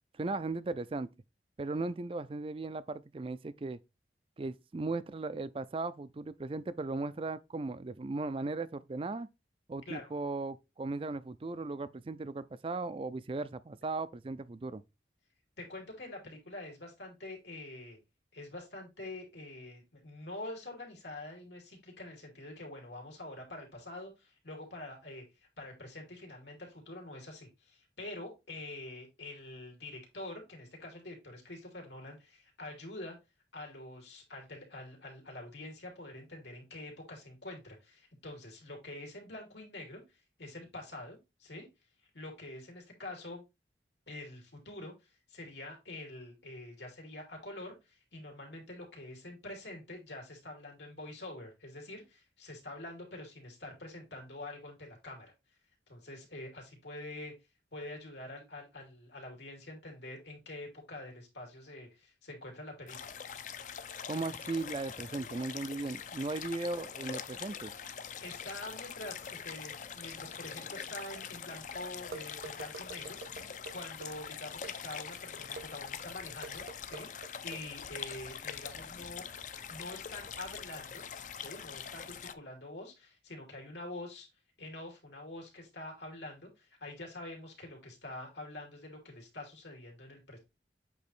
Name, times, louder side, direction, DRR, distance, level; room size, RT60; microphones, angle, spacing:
voice 1, 0.1-1.1 1.6-3.8 4.4-9.3 9.7-14.8 64.1-67.7, right 3 dB, 30° right, 0.4 m, -37 dB
voice 2, 15.6-18.0 18.3-33.2 33.5-41.7 42.1-43.4 44.1-55.3 55.9-57.3 57.7-63.2 68.2-73.2 73.7-79.2 79.7-81.0 81.4-84.3 84.6-90.4, left 2 dB, 85° left, 2.8 m, -46 dB
sound 1, 62.9-82.3, left 7 dB, 45° left, 0.5 m, -44 dB
Metal cans - clinking, 72.1-74.1 74.6-74.7 75.6-75.7 76.4-77.6, right 4 dB, 65° right, 1.1 m, -45 dB
8.2 x 3.0 x 4.4 m
head